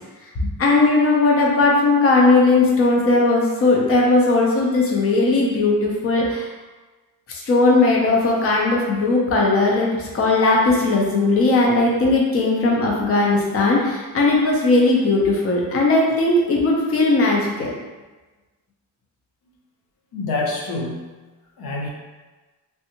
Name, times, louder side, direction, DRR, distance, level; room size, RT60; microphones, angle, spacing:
voice 1, 0.6-6.5 7.3-17.7, left 2 dB, 40° left, -2 dB, 0.7 m, -18 dB
voice 2, 20.1-21.1 21.6-21.9, left 3 dB, 80° left, -2 dB, 0.8 m, -26 dB
3.4 x 2.6 x 2.9 m, 1.2 s
cardioid pair, 125°, 36 cm